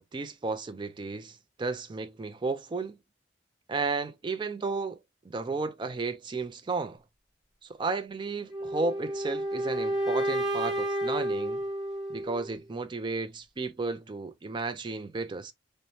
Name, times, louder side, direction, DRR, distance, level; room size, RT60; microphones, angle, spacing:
voice 1, 0.0-3.0 3.7-5.0 5.2-7.0 7.8-11.6 12.1-15.5, right 3 dB, 25° right, 0.3 m, -33 dB
sound 1, 8.5-12.5, right 1 dB, ahead, 0.8 m, -31 dB
2.7 x 2.1 x 2.9 m
head